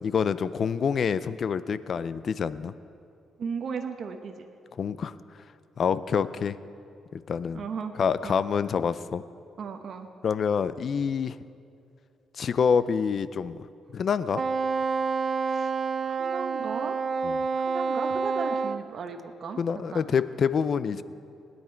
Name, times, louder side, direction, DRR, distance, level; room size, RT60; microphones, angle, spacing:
voice 1, 0.0-2.7 4.8-5.1 5.8-6.6 7.1-7.7 8.0-9.2 10.2-11.4 12.4-13.6 13.9-14.4 17.2-17.4 19.6-21.0, left 6 dB, 50° left, 15 dB, 0.5 m, -27 dB
voice 2, 3.4-4.5 7.5-7.9 8.2-8.5 9.6-10.1 15.5-15.7 16.0-17.0 17.5-19.6 19.9-20.1 20.9-21.0, right 5 dB, 55° right, 5 dB, 0.9 m, -36 dB
Wind instrument woodwind instrument, 14.3-18.8, right 5 dB, 35° right, 0.4 m, -28 dB
20.0 x 9.7 x 4.5 m, 2.5 s
cardioid pair, 90°, 0 cm